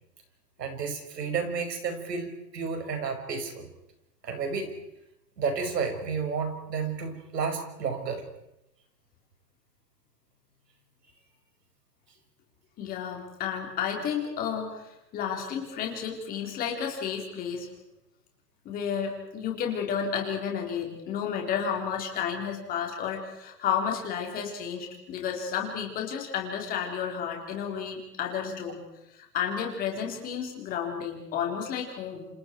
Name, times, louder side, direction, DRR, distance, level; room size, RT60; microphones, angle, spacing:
voice 1, 0.6-3.7 4.2-4.7 5.4-8.2, right 5 dB, 75° right, 5 dB, 6.0 m, -31 dB
voice 2, 12.8-17.7 18.6-28.8 29.1-32.3, left 7 dB, 15° left, 1 dB, 4.0 m, -32 dB
28.5 x 27.5 x 4.7 m, 0.87 s
hypercardioid pair, 160°, 50 cm